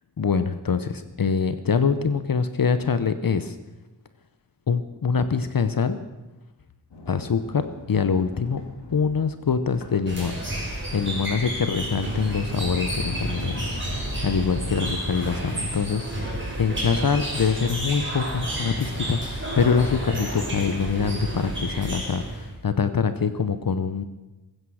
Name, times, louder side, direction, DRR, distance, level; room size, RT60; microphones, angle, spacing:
voice 1, 0.2-3.6 4.7-6.0 7.1-8.6 8.9-24.0, left 6 dB, 55° left, 11 dB, 0.9 m, -25 dB
Sliding door, 6.9-10.7 11.4-20.9, left 1 dB, 85° left, 2.4 m, -40 dB
sound 1, 10.1-22.5, right 1 dB, 30° right, 5.0 m, -30 dB
21.5 x 9.7 x 6.3 m, 1.1 s
wide cardioid pair, 100°, 40 cm